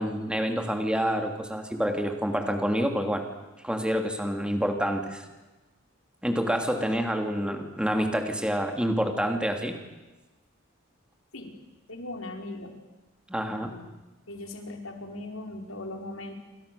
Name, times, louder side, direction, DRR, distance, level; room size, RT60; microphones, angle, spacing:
voice 1, 0.0-3.2 3.6-5.2 6.2-9.7 13.3-13.7, equal, 5° right, 4 dB, 3.0 m, -27 dB
voice 2, 11.9-12.8 13.4-13.8 14.3-16.3, left 2 dB, 80° left, 3 dB, 4.9 m, -39 dB
28.0 x 27.0 x 7.0 m, 1.1 s
head